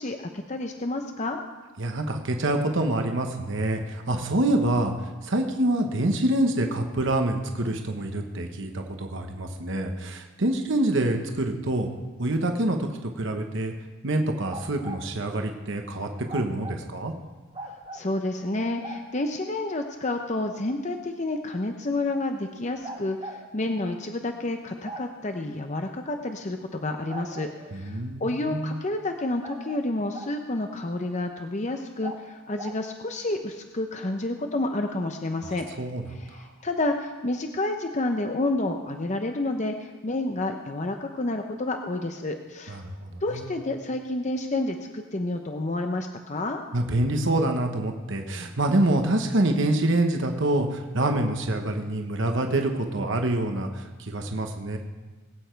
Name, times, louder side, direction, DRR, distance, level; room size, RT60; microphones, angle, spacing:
voice 1, 0.0-1.4 17.6-35.7 36.1-42.8 43.2-46.6, left 2 dB, 30° left, 5 dB, 0.7 m, -30 dB
voice 2, 1.8-11.9 12.2-13.7 14.0-17.1 27.7-28.8 35.4-36.0 36.3-36.5 42.7-43.5 46.7-54.8, right 1 dB, 55° right, 4 dB, 1.1 m, -26 dB
sound 1, 14.4-15.0 16.3-16.8 17.5-18.1 18.8-19.0 20.8-20.9 22.8-23.4 24.8-25.0 27.1-27.8 29.4-30.3 32.0-32.2 32.6-32.8, right 2 dB, 25° right, 1.9 m, -39 dB
20.5 x 8.9 x 4.5 m, 1.3 s
head